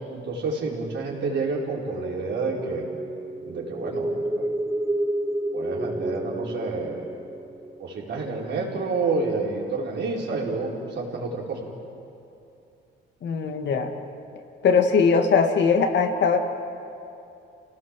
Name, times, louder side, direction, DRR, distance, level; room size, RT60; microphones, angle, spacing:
voice 1, 0.1-2.8 3.4-4.5 5.5-7.1 7.8-11.6, right 3 dB, 65° right, -2 dB, 4.7 m, -29 dB
sound 1, 2.0-8.5, right 1 dB, 10° right, 0.9 m, -30 dB
voice 2, 13.2-13.9 14.6-16.4, left 5 dB, 60° left, 5 dB, 2.1 m, -20 dB
28.0 x 17.5 x 7.6 m, 2.7 s
cardioid pair, 90°, 20 cm